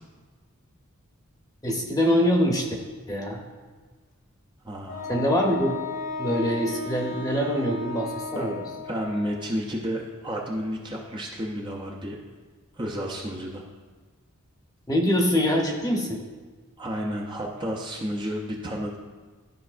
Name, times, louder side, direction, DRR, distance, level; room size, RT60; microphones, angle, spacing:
voice 1, 1.6-2.7 3.1-3.4 5.1-5.8 6.2-8.6 14.9-16.2, equal, 15° left, 0 dB, 0.9 m, -24 dB
voice 2, 4.6-5.2 8.3-12.2 12.7-13.6 16.8-19.0, equal, 20° right, -1 dB, 0.6 m, -31 dB
Wind instrument woodwind instrument, 4.9-9.5, left 3 dB, 75° left, 1.5 m, -35 dB
12.0 x 5.2 x 2.5 m, 1.4 s
head